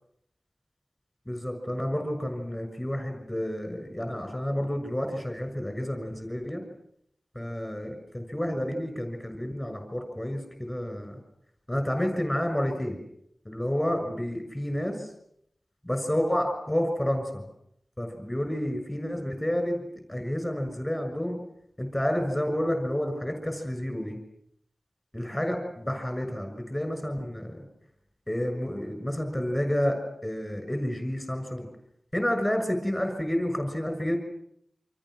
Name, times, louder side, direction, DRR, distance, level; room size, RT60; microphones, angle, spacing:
voice 1, 1.3-6.6 7.3-11.2 11.7-13.0 13.4-15.1 15.8-17.4 18.0-19.8 20.1-21.4 21.8-24.2 25.1-27.6 28.3-31.7 32.1-34.2, equal, 15° left, 6 dB, 6.6 m, -30 dB
29.0 x 26.5 x 6.5 m, 0.73 s
wide cardioid pair, 95°, 0 cm